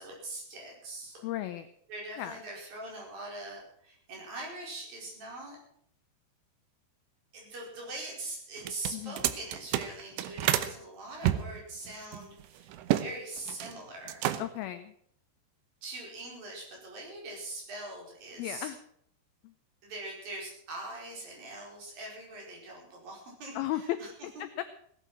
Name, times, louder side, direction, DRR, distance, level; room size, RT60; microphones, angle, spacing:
voice 1, 0.0-1.2 1.9-5.6 7.3-14.2 15.8-18.7 19.8-24.1, right 2 dB, 55° right, -1 dB, 6.4 m, -42 dB
voice 2, 1.2-1.7 2.2-2.4 8.9-9.2 14.4-14.9 18.4-18.8 19.4-19.5 23.6-23.8 24.6-24.7, left 14 dB, 80° left, 11 dB, 2.2 m, -35 dB
sound 1, 8.6-10.7 11.2-13.1 13.4-13.8 14.1-14.7, right 13 dB, 80° right, 3.1 m, -30 dB
17.5 x 11.0 x 6.1 m, 0.67 s
omnidirectional pair, 5.1 m